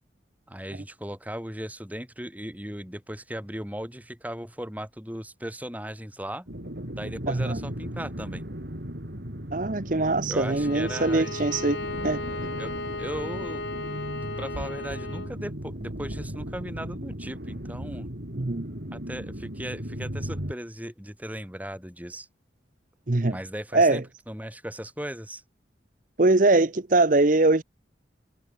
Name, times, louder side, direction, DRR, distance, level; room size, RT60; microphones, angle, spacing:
voice 1, 0.5-6.5 6.9-8.4 10.3-11.3 12.6-12.7 13.0-13.6 14.4-18.1 18.9-22.3 23.3-25.4, equal, 10° right, 6.6 m, -37 dB
sound 1, 6.5-20.5, equal, 65° right, 4.3 m, -36 dB
voice 2, 7.3-7.6 9.5-12.2 18.4-18.7 23.1-23.4 23.7-24.0 26.2-27.6, right 2 dB, 45° right, 0.9 m, -22 dB
Bowed string instrument, 10.4-15.4, left 2 dB, 75° left, 3.5 m, -35 dB
head